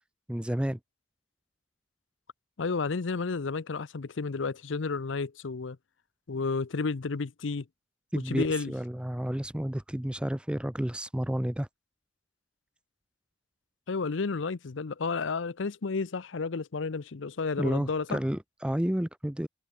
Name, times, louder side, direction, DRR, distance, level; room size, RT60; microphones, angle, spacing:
voice 1, 0.3-0.8 8.1-11.7 17.6-19.5, equal, 5° right, 0.6 m, -31 dB
voice 2, 2.6-5.8 6.3-7.7 8.3-8.7 13.9-18.2, left 4 dB, 75° left, 0.7 m, -31 dB
head